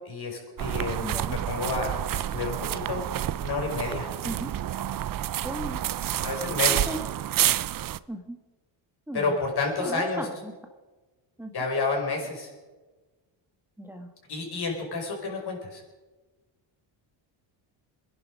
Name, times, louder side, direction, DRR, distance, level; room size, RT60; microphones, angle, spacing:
voice 1, 0.0-3.0 3.4-4.1 6.2-6.9 9.1-10.3 11.5-12.5 14.3-15.8, left 3 dB, 50° left, 1 dB, 5.3 m, -30 dB
sound 1, 0.6-8.0, right 12 dB, 45° right, 0.6 m, -29 dB
voice 2, 1.0-1.3 4.2-4.5 5.4-5.8 6.7-7.0 8.1-8.4 9.1-9.3 9.8-10.5 11.4-11.5 13.8-14.1, equal, 5° right, 4 dB, 1.5 m, -36 dB
23.5 x 11.0 x 5.2 m, 1.2 s
cardioid pair, 105°, 49 cm